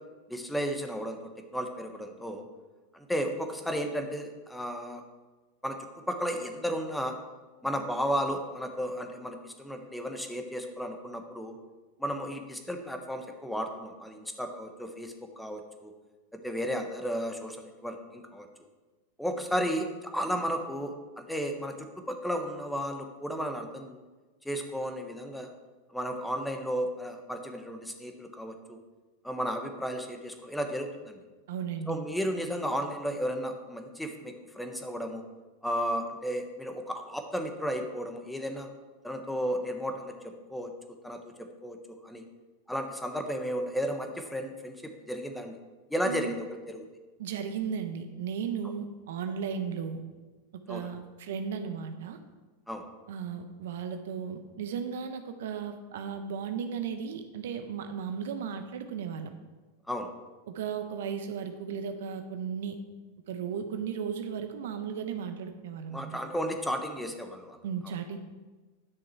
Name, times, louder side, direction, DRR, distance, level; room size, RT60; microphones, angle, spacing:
voice 1, 0.3-1.2 1.5-2.5 2.9-5.0 5.6-5.8 6.1-7.2 7.6-11.6 12.0-15.9 16.4-18.5 19.2-21.7 22.1-24.0 24.4-25.5 25.9-28.8 29.2-31.2 31.9-35.2 35.6-38.7 39.0-40.7 41.0-41.8 42.0-42.2 42.7-45.6 45.9-46.8 50.7-50.9 52.7-52.8 59.9-60.1 65.9-67.6 67.8-67.9, equal, 5° left, 5 dB, 1.2 m, -33 dB
voice 2, 31.5-32.0 46.1-46.3 47.2-50.0 50.7-52.2 53.1-59.3 60.5-62.8 63.3-66.2 67.6-68.2, right 7 dB, 70° right, 8 dB, 0.8 m, -35 dB
10.5 x 6.3 x 4.5 m, 1.3 s
hypercardioid pair, 100°, 0 cm